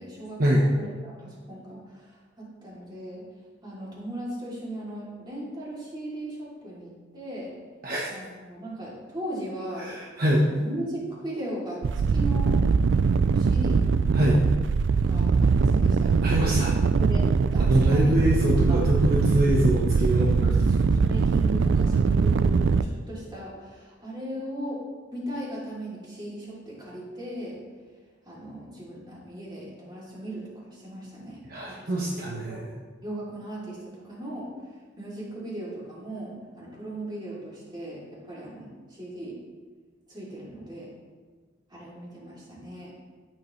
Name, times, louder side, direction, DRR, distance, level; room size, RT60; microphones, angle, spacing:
voice 1, 0.0-3.2 3.6-7.5 8.1-9.9 10.4-11.8 12.1-12.5 13.3-13.8 14.9-16.3 17.0-18.1 18.7-18.8 20.4-24.8 25.1-27.6 28.2-31.4 31.7-32.6 33.0-34.5 35.0-39.4 40.1-40.9 41.7-42.9, right 1 dB, 20° right, -6 dB, 3.0 m, -37 dB
voice 2, 9.8-10.4 14.1-14.4 16.2-16.7 17.6-20.3 31.5-32.6, equal, 50° right, -3 dB, 1.1 m, -24 dB
sound 1, 11.8-22.8, right 5 dB, 65° right, 0.4 m, -22 dB
14.5 x 7.5 x 3.2 m, 1.5 s
head